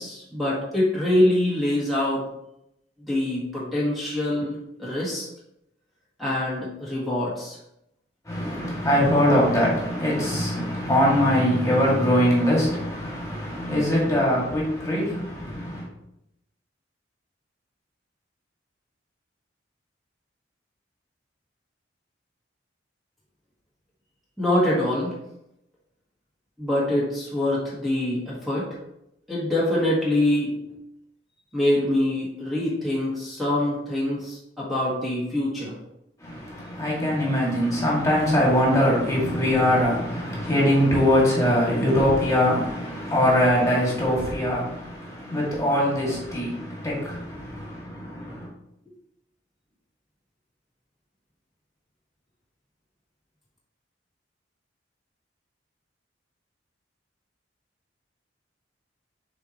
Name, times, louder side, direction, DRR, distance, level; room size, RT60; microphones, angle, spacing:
voice 1, 0.0-2.2 3.1-5.3 6.2-7.6 24.4-25.2 26.6-28.6 29.3-30.6 31.5-35.7, left 1 dB, ahead, -7 dB, 1.6 m, -24 dB
voice 2, 8.3-15.8 36.2-48.5, equal, 15° left, -5 dB, 2.2 m, -22 dB
7.0 x 4.5 x 3.0 m, 0.82 s
head